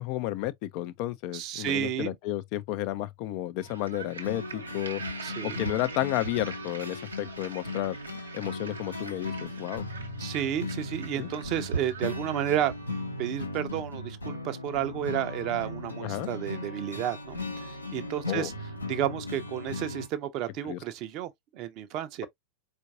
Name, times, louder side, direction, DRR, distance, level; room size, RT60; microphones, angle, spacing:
voice 1, 0.0-5.0 5.4-8.0 8.3-9.8 11.2-11.3 16.0-16.3 18.3-18.5 20.6-20.8, left 15 dB, 45° left, 0.4 m, -32 dB
voice 2, 1.3-2.2 5.2-5.6 10.2-12.7 13.2-18.5 18.9-22.3, right 11 dB, 40° right, 0.6 m, -32 dB
sound 1, 3.6-12.9, right 4 dB, 75° right, 0.8 m, -41 dB
sound 2, 4.2-20.1, left 2 dB, 85° left, 0.8 m, -37 dB
4.5 x 2.5 x 2.6 m
figure-of-eight pair, 90°, 0 cm